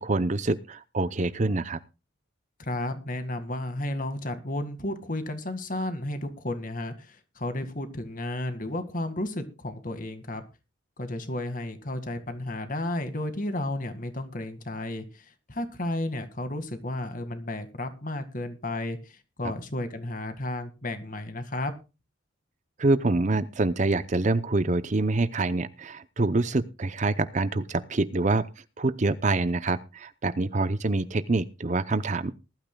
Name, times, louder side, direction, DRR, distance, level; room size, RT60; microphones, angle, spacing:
voice 1, 0.0-1.8 22.8-28.5 28.8-32.3, right 2 dB, 35° right, 14 dB, 0.6 m, -26 dB
voice 2, 2.6-10.4 11.0-21.7, left 1 dB, 40° left, 8 dB, 1.9 m, -33 dB
20.0 x 12.5 x 2.3 m, 0.30 s
head